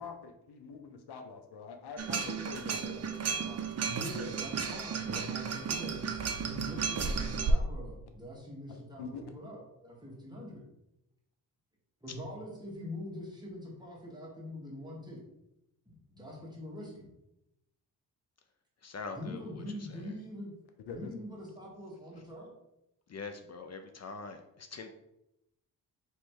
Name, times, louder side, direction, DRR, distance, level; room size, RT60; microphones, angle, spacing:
voice 1, 0.0-3.7 8.7-9.2 20.9-21.1, left 5 dB, 75° left, 6 dB, 0.7 m, -45 dB
sound 1, 2.0-7.5, right 6 dB, 40° right, 0.6 m, -34 dB
voice 2, 3.8-10.7 12.0-15.2 15.9-17.1 19.1-20.5 20.9-22.5, left 1 dB, 10° right, -4 dB, 1.4 m, -43 dB
voice 3, 18.8-19.6 23.1-24.9, left 4 dB, 40° left, 6 dB, 0.5 m, -43 dB
3.2 x 3.1 x 4.5 m, 0.87 s
cardioid pair, 85°, 40 cm